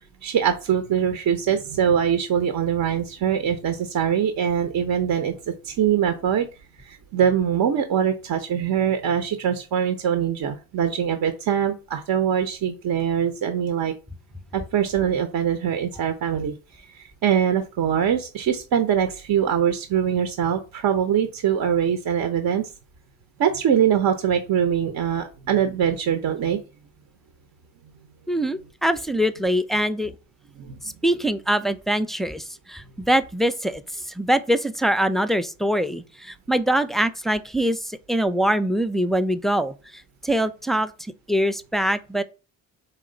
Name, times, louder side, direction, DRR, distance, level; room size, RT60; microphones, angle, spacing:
voice 1, 0.2-6.5 6.8-13.9 14.5-22.7 23.4-26.6 30.6-30.8, right 8 dB, 55° right, 0.7 m, -23 dB
voice 2, 28.3-30.1 30.8-33.8 34.2-40.9 41.3-42.2, equal, ahead, 0.4 m, -23 dB
4.3 x 3.0 x 3.8 m
supercardioid pair, 60°, 41 cm